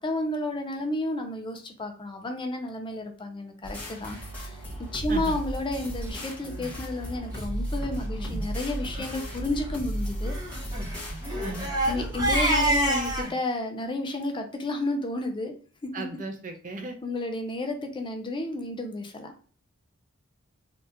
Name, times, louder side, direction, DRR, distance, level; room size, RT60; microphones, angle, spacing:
voice 1, 0.0-4.6 4.9-10.3 10.6-10.8 11.9-15.5 15.8-16.0 17.0-19.3, left 2 dB, 25° left, 4 dB, 0.5 m, -31 dB
sound 1, 3.6-13.2, equal, 5° left, 1.0 m, -34 dB
Crying sobbing, 6.4-6.7 7.3-7.4 7.7-7.8 8.2-8.4 8.8-9.1 10.2-13.3, right 1 dB, 20° right, 1.0 m, -28 dB
voice 2, 15.9-17.0, right 2 dB, 40° right, 4 dB, 0.6 m, -36 dB
3.6 x 2.4 x 2.7 m, 0.41 s
head